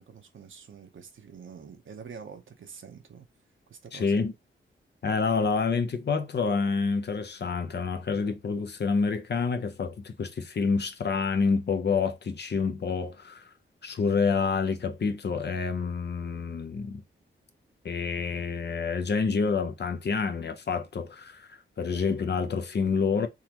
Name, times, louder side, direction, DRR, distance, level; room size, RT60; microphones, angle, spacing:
voice 1, 0.0-3.3 3.7-4.2, right 6 dB, 70° right, 0.9 m, -46 dB
voice 2, 3.9-4.3 5.0-13.5 13.8-17.0 17.8-23.3, left 5 dB, 55° left, 0.7 m, -28 dB
3.7 x 2.9 x 3.0 m
cardioid pair, 80°, 21 cm